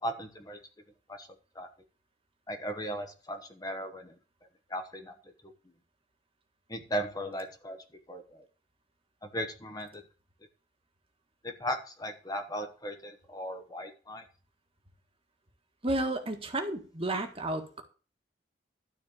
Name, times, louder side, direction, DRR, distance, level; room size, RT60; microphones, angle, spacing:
voice 1, 0.0-0.6 1.1-1.3 1.5-1.7 2.5-4.1 4.7-5.1 6.7-7.8 8.1-8.4 9.2-10.0 11.4-14.2, equal, 20° left, 5 dB, 1.3 m, -37 dB
voice 2, 15.8-17.8, right 1 dB, 30° right, 5 dB, 1.7 m, -32 dB
12.5 x 4.4 x 8.4 m, 0.37 s
head